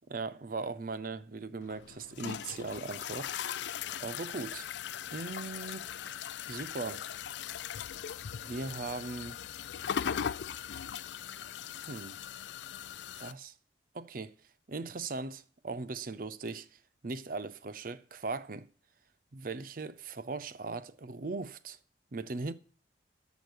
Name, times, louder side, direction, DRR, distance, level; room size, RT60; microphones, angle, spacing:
voice 1, 0.1-3.5 4.0-4.7 5.1-7.1 8.4-9.4 11.9-12.2 13.2-13.5 13.9-14.4 14.7-16.7 17.0-18.7 19.3-21.8 22.1-22.5, right 3 dB, 50° right, 0.6 m, -39 dB
sound 1, 1.6-13.3, left 8 dB, 75° left, 0.4 m, -39 dB
13.0 x 5.2 x 6.2 m
head